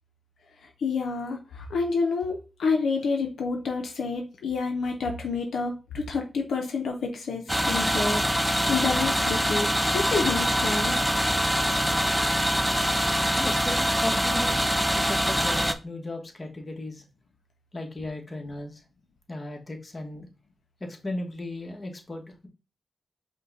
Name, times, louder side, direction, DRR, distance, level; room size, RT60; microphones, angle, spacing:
voice 1, 0.8-11.0, left 4 dB, 90° left, 3 dB, 0.6 m, -29 dB
sound 1, 7.5-15.7, equal, ahead, 0.5 m, -24 dB
voice 2, 13.4-14.6 14.9-17.0 17.7-18.8 19.3-20.3 20.8-22.5, left 2 dB, 40° left, 2 dB, 1.2 m, -36 dB
5.2 x 2.2 x 3.9 m, 0.31 s
cardioid pair, 60°, 0 cm